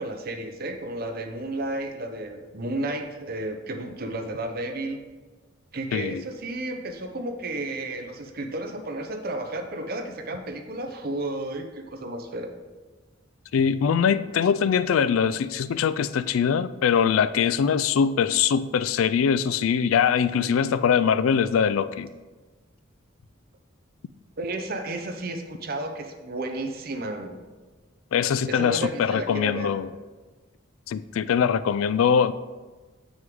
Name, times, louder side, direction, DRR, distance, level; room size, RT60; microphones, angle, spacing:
voice 1, 0.0-5.0 5.7-12.5 24.4-27.4 28.5-29.7, right 1 dB, 50° right, 6 dB, 0.7 m, -32 dB
voice 2, 5.9-6.2 13.5-22.1 28.1-29.9 30.9-32.3, left 7 dB, 85° left, 15 dB, 0.3 m, -22 dB
7.6 x 6.2 x 3.6 m, 1.3 s
head